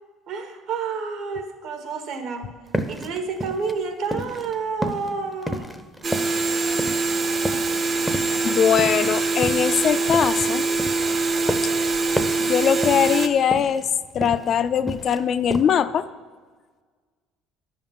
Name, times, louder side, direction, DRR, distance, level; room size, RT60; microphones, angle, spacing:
voice 1, 0.3-2.6 2.9-5.7, right 5 dB, 60° right, 7 dB, 1.4 m, -29 dB
sound 1, 2.7-4.5 4.8-7.2 7.4-7.8 8.1-10.5 10.8-11.9 12.2-12.5 12.8-13.2 13.5-14.5 14.7-15.3 15.5-15.7, equal, ahead, 0.6 m, -31 dB
sound 2, 6.0-13.3, right 3 dB, 30° right, 0.7 m, -23 dB
sound 3, 6.4-12.5, right 4 dB, 80° right, 2.1 m, -41 dB
voice 2, 8.4-10.6 11.6-11.7 12.5-13.8 14.1-16.1, left 8 dB, 40° left, 12 dB, 0.4 m, -21 dB
10.0 x 5.6 x 7.2 m, 1.5 s
cardioid pair, 140°, 0 cm